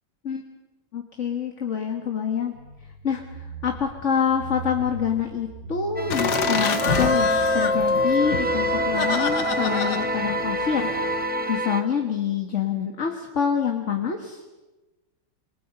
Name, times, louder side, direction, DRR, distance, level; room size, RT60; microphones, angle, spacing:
voice 1, 0.9-2.5 3.0-14.4, left 7 dB, 35° left, 3 dB, 1.7 m, -27 dB
sound 1, 2.5-9.4, right 1 dB, 70° right, 4.2 m, -40 dB
sound 2, 6.0-11.8, equal, 10° right, 0.7 m, -25 dB
Laughter, 6.1-11.3, left 6 dB, 55° left, 1.6 m, -28 dB
27.0 x 24.0 x 5.5 m, 1.1 s
omnidirectional pair, 2.4 m